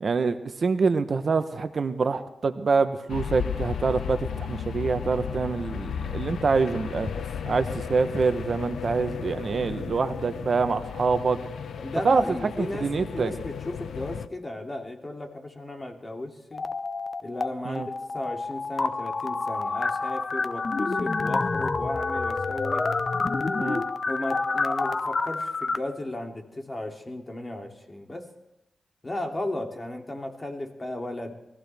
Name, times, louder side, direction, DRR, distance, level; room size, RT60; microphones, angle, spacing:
voice 1, 0.0-7.1 7.5-11.4 12.0-13.3 17.6-17.9 23.6-23.8, right 4 dB, 60° right, 10 dB, 0.9 m, -25 dB
sound 1, 3.1-14.3, left 7 dB, 85° left, 0.5 m, -34 dB
voice 2, 11.7-16.6 17.2-17.8 18.1-22.8 24.1-28.3 29.0-31.3, left 1 dB, 30° left, 2 dB, 2.7 m, -35 dB
sound 2, 16.5-17.5 17.7-25.8, left 3 dB, 50° left, 0.9 m, -28 dB
22.0 x 15.0 x 3.5 m, 0.93 s
cardioid pair, 60°, 0 cm